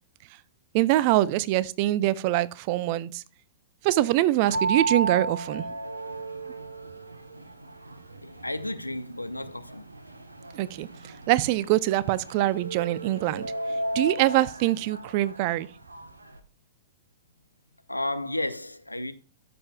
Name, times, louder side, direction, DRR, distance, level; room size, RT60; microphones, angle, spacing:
voice 1, 0.7-3.2 3.8-5.7 10.5-13.5 13.9-15.7, right 16 dB, 40° right, 0.5 m, -24 dB
sound 1, 4.5-16.4, right 2 dB, 75° right, 1.2 m, -34 dB
voice 2, 8.2-9.9 17.9-19.1, left 1 dB, 85° left, 0.8 m, -32 dB
13.5 x 6.8 x 2.3 m
figure-of-eight pair, 105°, 0 cm